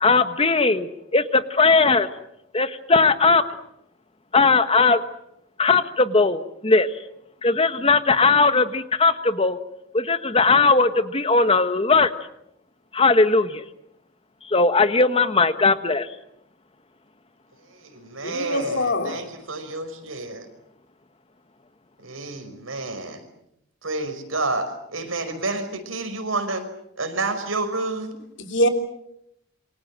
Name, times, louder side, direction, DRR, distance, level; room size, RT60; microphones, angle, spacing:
voice 1, 0.0-2.1 2.5-3.4 4.3-5.0 5.6-6.9 7.4-9.6 9.9-12.1 12.9-13.6 14.5-16.1, left 3 dB, 30° left, 10 dB, 1.3 m, -18 dB
voice 2, 17.7-20.5 22.0-23.2 23.8-26.7 27.0-28.2, right 3 dB, 85° right, 7 dB, 5.3 m, -29 dB
voice 3, 18.2-19.2 28.4-28.7, left 1 dB, 60° left, 6 dB, 3.4 m, -23 dB
27.5 x 24.5 x 7.6 m, 0.80 s
head